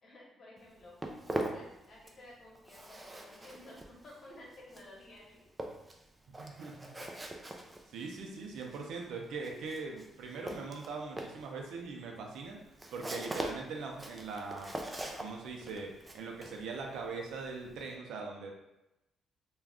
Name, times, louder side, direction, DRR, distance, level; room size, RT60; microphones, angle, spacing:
voice 1, 0.0-1.0 1.5-5.4, left 1 dB, 50° left, -4 dB, 1.1 m, -54 dB
Walk footsteps, 0.6-2.3 2.5-17.9, right 1 dB, 20° right, 0.4 m, -42 dB
voice 2, 6.4-7.0 7.9-12.6 12.9-14.7 15.2-18.5, right 4 dB, 80° right, 1 dB, 0.5 m, -41 dB
2.4 x 2.2 x 3.5 m, 0.93 s
cardioid pair, 90°, 0 cm